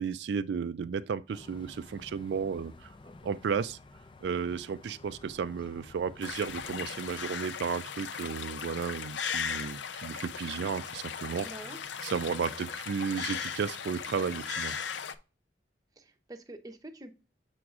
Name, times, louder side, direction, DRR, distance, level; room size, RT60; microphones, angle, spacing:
voice 1, 0.0-2.9 3.2-3.8 4.2-11.5 12.0-14.8, right 6 dB, 75° right, 0.3 m, -33 dB
sound 1, 1.3-7.2, left 3 dB, 25° left, 0.4 m, -52 dB
sound 2, 6.2-15.2, left 7 dB, 80° left, 0.5 m, -37 dB
voice 2, 11.4-11.8 16.0-17.3, right 1 dB, 20° right, 0.7 m, -46 dB
7.0 x 6.0 x 2.4 m
head